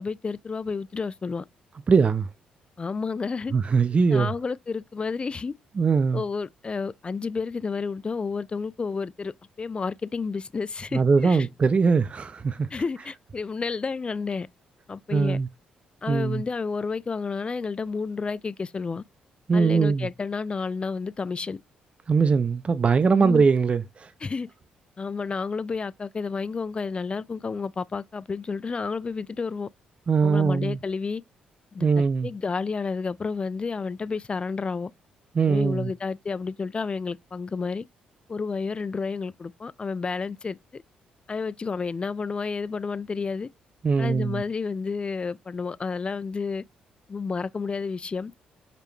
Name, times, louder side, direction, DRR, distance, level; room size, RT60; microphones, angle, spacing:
voice 1, 0.0-1.4 2.8-3.5 4.1-5.5 6.1-11.5 12.7-14.5 14.9-15.4 16.0-19.0 19.5-21.6 23.1-23.4 24.2-24.5 25.0-29.7 30.2-31.2 31.7-34.9 35.5-37.9 38.3-40.8 41.3-43.5 44.0-46.6 47.1-48.3, left 4 dB, 35° left, 0.3 m, -31 dB
voice 2, 1.9-2.3 3.5-4.3 5.8-6.2 10.9-12.7 15.1-15.5 16.1-16.4 19.5-20.1 22.1-24.1 30.1-30.8 31.8-32.3 35.3-35.9 43.8-44.4, right 5 dB, 40° right, 0.4 m, -21 dB
5.0 x 2.2 x 3.2 m
hypercardioid pair, 50°, 3 cm